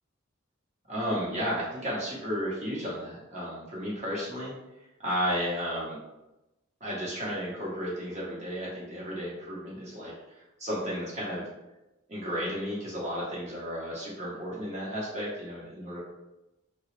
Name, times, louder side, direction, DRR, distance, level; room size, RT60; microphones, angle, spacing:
voice 1, 0.9-4.5 5.0-6.0 6.8-11.4 12.1-16.0, equal, 35° right, -6 dB, 1.0 m, -33 dB
2.8 x 2.3 x 3.1 m, 0.97 s
head